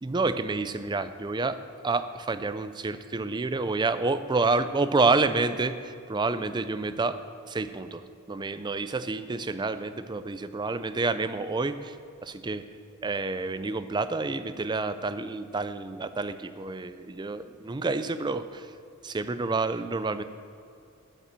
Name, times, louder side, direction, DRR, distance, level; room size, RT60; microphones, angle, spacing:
voice 1, 0.0-7.2 7.5-12.0 12.2-12.7 13.0-18.7 19.0-20.2, right 3 dB, 20° right, 12 dB, 0.4 m, -29 dB
11.0 x 8.2 x 7.4 m, 2.5 s
head